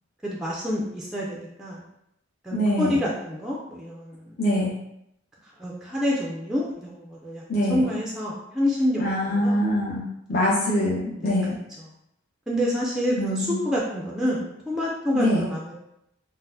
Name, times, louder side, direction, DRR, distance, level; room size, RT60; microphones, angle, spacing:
voice 1, 0.2-1.8 2.4-4.3 5.6-7.4 7.7-9.6 11.2-11.3 12.5-15.8, equal, 5° right, -5 dB, 0.4 m, -27 dB
voice 2, 2.5-3.1 4.4-4.7 7.5-7.9 9.0-11.6 13.2-13.6 15.1-15.4, left 1 dB, 50° left, -7 dB, 0.6 m, -24 dB
4.0 x 2.0 x 2.6 m, 0.80 s
head